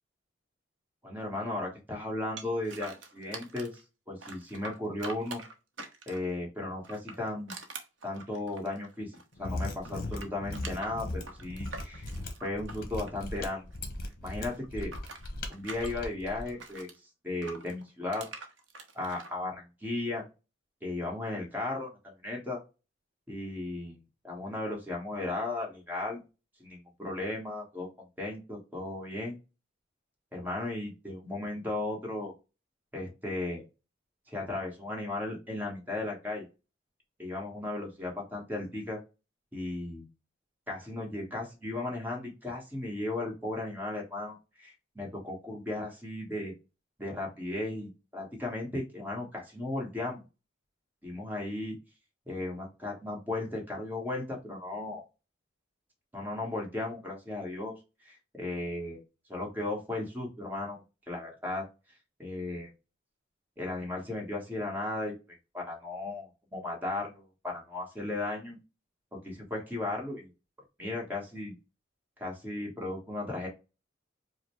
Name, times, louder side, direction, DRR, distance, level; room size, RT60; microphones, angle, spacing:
voice 1, 1.0-3.8 4.1-5.4 6.1-7.6 8.0-12.1 12.4-13.7 14.2-14.9 15.5-16.9 17.2-18.3 18.9-20.2 20.8-22.6 23.3-26.2 26.6-27.9 28.2-29.4 30.3-32.3 32.9-33.6 34.3-36.5 37.2-39.0 39.5-40.0 40.7-46.5 47.0-50.2 51.0-51.8 52.3-55.0 56.1-57.7 58.0-59.0 59.3-61.7 62.2-62.7 63.6-65.1 65.5-68.6 69.1-70.3 70.8-71.5 72.2-73.5, left 2 dB, 10° right, -1 dB, 1.3 m, -36 dB
sound 1, 2.4-3.8 4.2-6.3 6.8-9.3 9.6-13.8 14.0-17.0 17.4-19.3, right 3 dB, 75° right, 0.8 m, -45 dB
Mechanisms, 9.3-16.5, left 2 dB, 55° left, 0.8 m, -38 dB
4.9 x 2.1 x 3.1 m, 0.29 s
head